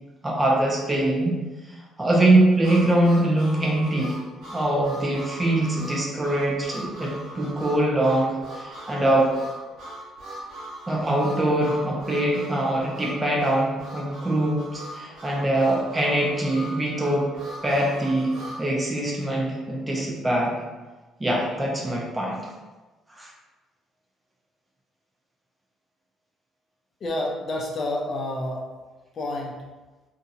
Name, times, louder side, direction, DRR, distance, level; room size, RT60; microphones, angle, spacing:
voice 1, 0.2-1.4 1.7-4.2 4.5-9.3 10.9-17.3 17.6-20.6 21.2-22.4 23.1-23.3, right 1 dB, 20° right, -3 dB, 0.7 m, -23 dB
Harmonica, 2.6-18.6, right 1 dB, 70° right, 1.1 m, -40 dB
voice 2, 27.0-28.7 29.1-29.6, left 1 dB, 45° left, -1 dB, 0.5 m, -29 dB
2.7 x 2.6 x 2.5 m, 1.2 s
supercardioid pair, 80°, 0 cm